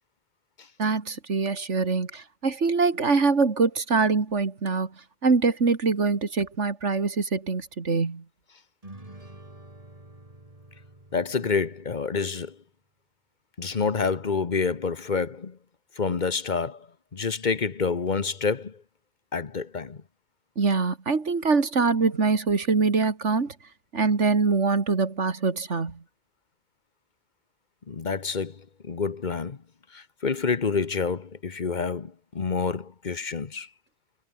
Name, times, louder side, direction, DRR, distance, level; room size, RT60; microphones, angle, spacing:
voice 1, 0.8-4.9 5.2-8.2 20.6-23.5 23.9-26.0, right 4 dB, 85° right, 2.6 m, -24 dB
sound 1, 8.8-12.4, right 1 dB, 30° right, 3.7 m, -48 dB
voice 2, 11.1-12.6 13.6-15.6 16.0-16.9 17.1-18.8 19.3-20.0 27.9-29.6 29.9-33.7, left 5 dB, 45° left, 1.2 m, -28 dB
omnidirectional pair, 1.2 m